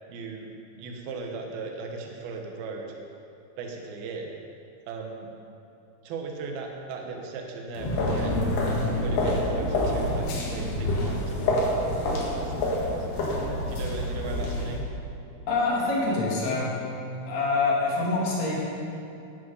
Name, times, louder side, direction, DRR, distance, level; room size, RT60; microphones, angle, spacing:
voice 1, 0.1-0.5 0.8-2.9 3.6-4.3 4.9-5.3 6.0-8.3 8.9-11.8 12.6-12.8 13.7-14.9, right 4 dB, 65° right, 2 dB, 2.6 m, -37 dB
sound 1, 7.7-14.8, left 1 dB, 65° left, 3.2 m, -27 dB
voice 2, 15.5-16.7 17.1-18.6, left 3 dB, 45° left, -5 dB, 2.9 m, -25 dB
12.0 x 10.5 x 5.6 m, 2.7 s
omnidirectional pair, 5.7 m